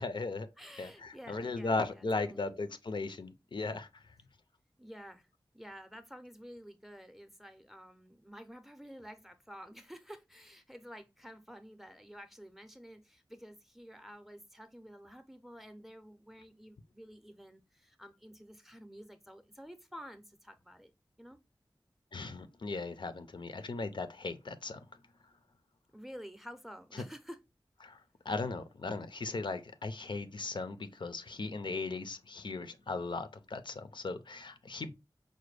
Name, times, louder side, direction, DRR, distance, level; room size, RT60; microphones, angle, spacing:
voice 1, 0.0-0.5 0.8-4.0 22.1-24.8 26.9-27.0 27.8-28.0 28.3-34.9, left 3 dB, 65° left, 0.5 m, -37 dB
voice 2, 0.6-2.5 4.8-5.3 5.5-20.9 21.2-21.4 25.9-27.4, equal, 5° right, 0.5 m, -51 dB
5.0 x 2.2 x 3.2 m
wide cardioid pair, 75°, 9 cm